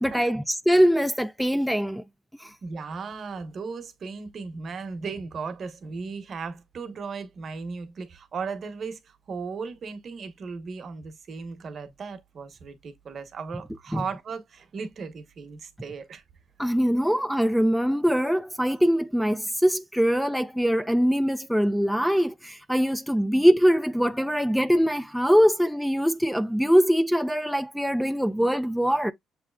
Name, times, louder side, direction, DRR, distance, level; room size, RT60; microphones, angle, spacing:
voice 1, 0.0-2.0 2.4-2.5 13.9-14.0 16.6-29.1, equal, ahead, 0.4 m, -22 dB
voice 2, 2.6-16.2, right 5 dB, 50° right, 1.0 m, -36 dB
6.8 x 3.2 x 2.3 m
cardioid pair, 90°, 0 cm